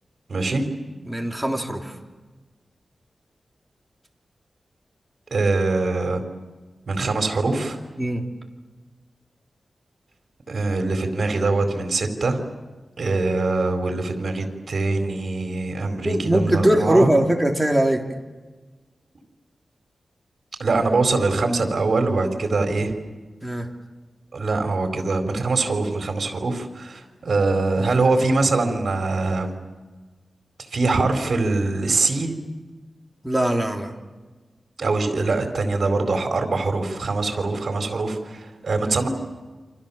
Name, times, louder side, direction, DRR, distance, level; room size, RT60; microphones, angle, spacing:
voice 1, 0.3-0.6 5.3-6.2 6.9-7.8 10.5-12.4 13.0-17.1 20.6-22.9 24.3-29.5 30.7-32.3 34.8-39.1, right 3 dB, 60° right, 6 dB, 4.5 m, -23 dB
voice 2, 1.0-1.9 8.0-8.2 16.0-18.0 23.4-23.6 33.2-33.9, right 1 dB, 5° right, 1 dB, 3.4 m, -20 dB
29.0 x 26.5 x 7.3 m, 1.3 s
wide cardioid pair, 115°, 0 cm